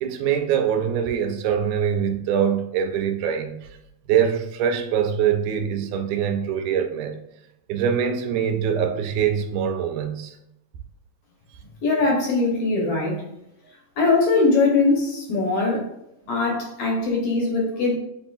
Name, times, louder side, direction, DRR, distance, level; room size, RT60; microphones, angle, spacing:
voice 1, 0.0-3.7 4.1-7.2 7.7-10.4, right 8 dB, 90° right, 2.0 m, -23 dB
voice 2, 11.8-13.2 14.0-15.9 16.3-18.0, left 3 dB, 65° left, 1.8 m, -21 dB
7.9 x 2.7 x 2.4 m
omnidirectional pair, 3.4 m